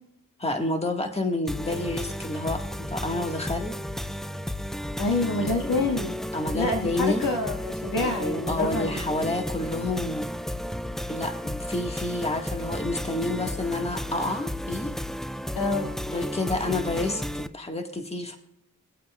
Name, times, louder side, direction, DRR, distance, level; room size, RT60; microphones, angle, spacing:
voice 1, 0.4-3.8 5.6-5.7 6.3-7.2 8.0-10.3 11.1-14.9 16.1-18.4, left 2 dB, 20° left, 3 dB, 1.7 m, -29 dB
sound 1, 1.5-17.5, equal, ahead, 0.4 m, -33 dB
voice 2, 5.0-6.2 6.5-9.0 15.6-15.9, left 2 dB, 85° left, 2 dB, 2.1 m, -27 dB
24.0 x 8.6 x 2.4 m, 0.78 s
cardioid pair, 60°, 34 cm